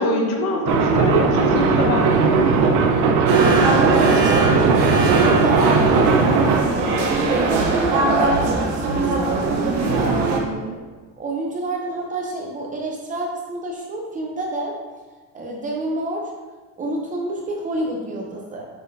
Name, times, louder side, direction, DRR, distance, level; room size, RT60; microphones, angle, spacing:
voice 1, 0.0-2.5 8.3-8.5, left 1 dB, 45° left, 1 dB, 1.1 m, -23 dB
sound 1, 0.7-6.6, right 4 dB, 85° right, 0.8 m, -18 dB
sound 2, 3.3-10.4, right 3 dB, 60° right, 1.1 m, -20 dB
voice 2, 3.6-10.8 11.2-14.8 15.3-16.3 16.8-18.7, right 2 dB, 20° right, -1 dB, 0.6 m, -28 dB
7.5 x 5.8 x 2.7 m, 1.4 s
cardioid pair, 175°, 37 cm